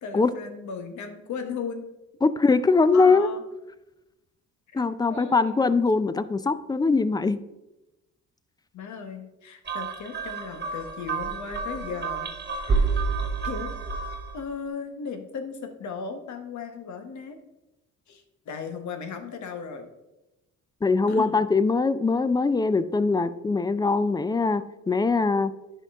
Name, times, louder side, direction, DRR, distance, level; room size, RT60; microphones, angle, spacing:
voice 1, 0.0-1.8 2.9-3.4 4.7-4.8 5.1-5.7 8.7-12.3 12.6-12.9 13.4-13.7 14.3-17.4 18.1-19.9 21.1-21.3, left 6 dB, 70° left, 6 dB, 1.2 m, -36 dB
voice 2, 2.2-3.3 4.7-7.4 20.8-25.5, left 4 dB, 15° left, 14 dB, 0.4 m, -22 dB
sound 1, 9.7-14.4, right 4 dB, 35° right, 1.4 m, -29 dB
9.9 x 5.4 x 3.6 m, 0.97 s
cardioid pair, 90°, 30 cm